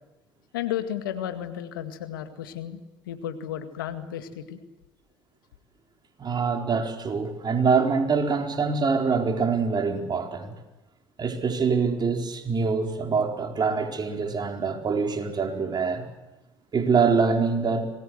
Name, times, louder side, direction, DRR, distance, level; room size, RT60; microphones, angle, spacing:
voice 1, 0.5-2.8 3.1-4.6, left 10 dB, 90° left, 1.9 m, -33 dB
voice 2, 6.2-10.5 11.2-16.1 16.7-17.9, right 5 dB, 40° right, 4.4 m, -24 dB
25.5 x 20.0 x 7.9 m
hypercardioid pair, 60°, 11 cm